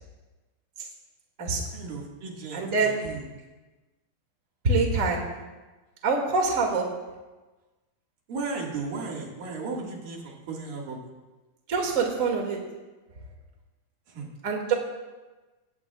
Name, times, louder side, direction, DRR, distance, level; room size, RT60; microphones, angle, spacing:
voice 1, 1.7-3.2 8.3-11.0 14.1-14.3, right 4 dB, 65° right, -1 dB, 3.6 m, -35 dB
voice 2, 2.5-2.9 4.6-5.2 6.0-6.8 11.7-12.6 14.4-14.7, right 4 dB, 30° right, 0 dB, 1.8 m, -24 dB
17.5 x 17.0 x 2.4 m, 1.2 s
omnidirectional pair, 4.4 m